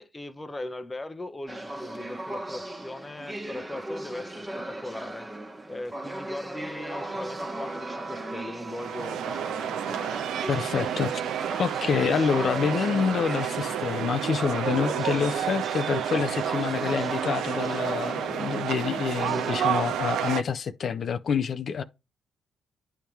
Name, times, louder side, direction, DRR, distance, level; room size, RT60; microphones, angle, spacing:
voice 1, 0.0-5.3 5.7-9.8, left 2 dB, 15° left, 0.8 m, -39 dB
sound 1, 1.5-19.9, right 1 dB, 20° right, 1.3 m, -37 dB
sound 2, 6.8-14.1, right 4 dB, 65° right, 1.2 m, -42 dB
sound 3, 8.7-20.4, right 10 dB, 85° right, 0.5 m, -30 dB
voice 2, 10.5-11.2 11.6-21.8, left 6 dB, 60° left, 0.6 m, -27 dB
10.0 x 3.6 x 4.5 m
cardioid pair, 75°, 0 cm